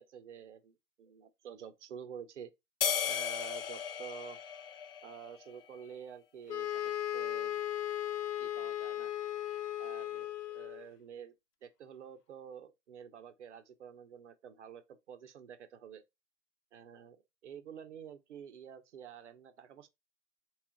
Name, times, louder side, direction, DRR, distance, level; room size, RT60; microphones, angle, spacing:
voice 1, 0.0-2.5 3.0-4.4 5.0-7.7 8.4-9.1 9.8-11.3 11.6-16.0 16.7-17.2 17.4-19.9, right 8 dB, 45° right, 0.7 m, -49 dB
sound 1, 2.8-5.4, left 8 dB, 40° left, 0.5 m, -35 dB
sound 2, 6.5-10.9, left 12 dB, 75° left, 0.7 m, -36 dB
3.2 x 3.1 x 4.4 m
figure-of-eight pair, 120°, 48 cm